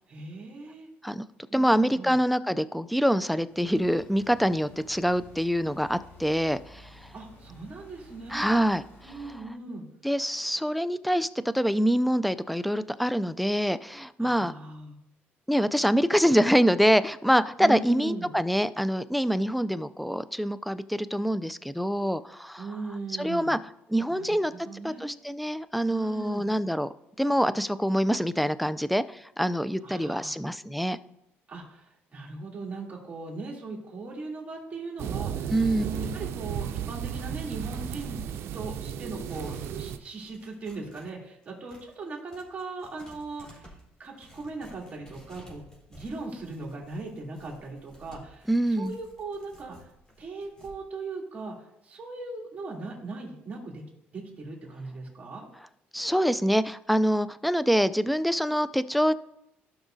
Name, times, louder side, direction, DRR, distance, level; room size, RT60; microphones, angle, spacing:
voice 1, 0.1-0.9 1.5-2.1 7.1-8.6 9.0-9.8 14.2-15.0 17.6-18.3 22.6-23.5 24.1-25.2 25.9-26.5 29.8-30.4 31.5-38.2 38.5-48.5 48.8-49.9 50.2-51.5 51.8-53.9 54.1-55.5, right 3 dB, 30° right, -2 dB, 2.9 m, -39 dB
voice 2, 1.5-7.1 8.3-8.8 9.2-9.3 10.0-14.5 15.5-22.6 23.2-23.6 23.9-26.9 27.2-31.0 35.5-35.8 48.5-49.0 55.9-59.1, equal, ahead, 15 dB, 0.3 m, -25 dB
sound 1, 3.4-9.5, left 2 dB, 60° left, 3.4 m, -52 dB
sound 2, 35.0-40.0, right 9 dB, 70° right, 0.6 m, -34 dB
Tearing, 38.8-41.1 41.4-50.7, equal, 15° left, 3.7 m, -54 dB
16.0 x 5.9 x 2.7 m, 0.83 s
cardioid pair, 105°, 4 cm